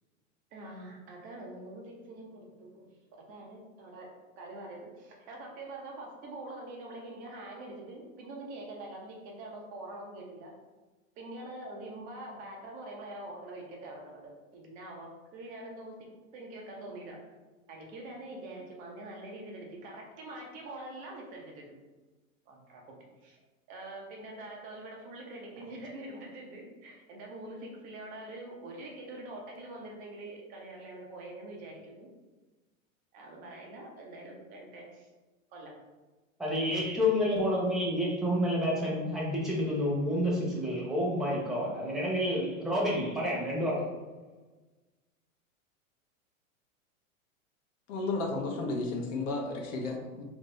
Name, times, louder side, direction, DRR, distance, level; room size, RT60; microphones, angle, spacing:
voice 1, 0.5-2.9 3.3-4.1 4.4-10.5 11.2-17.2 17.7-21.8 22.5-22.8 23.2-23.4 23.7-32.1 33.1-35.1 35.5-35.7, right 2 dB, 25° right, -1 dB, 0.3 m, -44 dB
voice 2, 36.4-43.9, left 1 dB, ahead, -6 dB, 0.7 m, -29 dB
voice 3, 47.9-50.2, left 3 dB, 65° left, 1 dB, 0.8 m, -33 dB
2.7 x 2.6 x 3.1 m, 1.2 s
hypercardioid pair, 125°, 41 cm